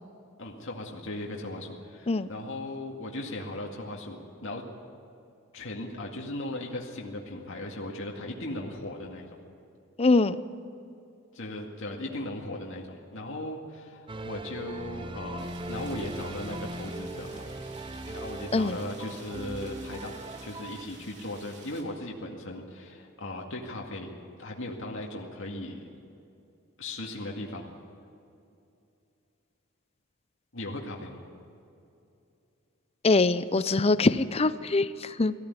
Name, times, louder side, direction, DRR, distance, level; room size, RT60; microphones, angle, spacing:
voice 1, 0.4-4.6 5.5-9.4 11.3-17.4 18.1-24.1 24.4-25.8 26.8-27.7 30.5-31.2, left 1 dB, 65° left, -1 dB, 2.1 m, -37 dB
voice 2, 10.0-10.4 18.5-18.8 33.0-35.3, left 3 dB, 30° left, 14 dB, 0.6 m, -23 dB
sound 1, 14.1-20.9, right 2 dB, 25° right, 0.6 m, -39 dB
Rain, 15.4-21.8, right 3 dB, 55° right, 3.4 m, -51 dB
19.0 x 15.5 x 9.7 m, 2.6 s
head